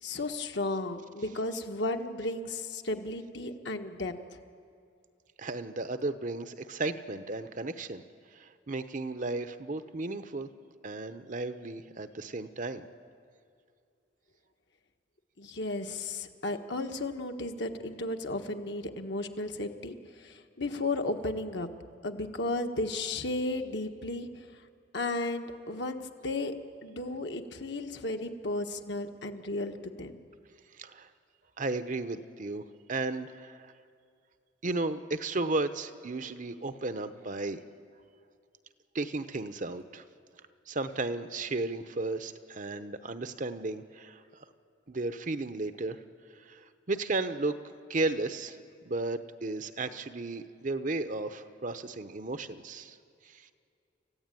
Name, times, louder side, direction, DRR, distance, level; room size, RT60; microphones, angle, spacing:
voice 1, 0.0-4.1 15.4-21.7 22.0-24.4 24.9-26.5 26.8-30.2, left 2 dB, 60° left, 5 dB, 1.4 m, -34 dB
voice 2, 5.4-8.0 8.3-10.5 10.8-12.9 30.8-31.1 31.6-32.6 32.9-33.7 34.6-37.6 38.9-40.0 40.7-44.4 44.9-46.0 46.4-47.5 47.9-48.6 48.8-53.0 53.2-53.5, right 2 dB, 45° right, 10 dB, 0.8 m, -34 dB
28.5 x 15.0 x 9.1 m, 2.4 s
head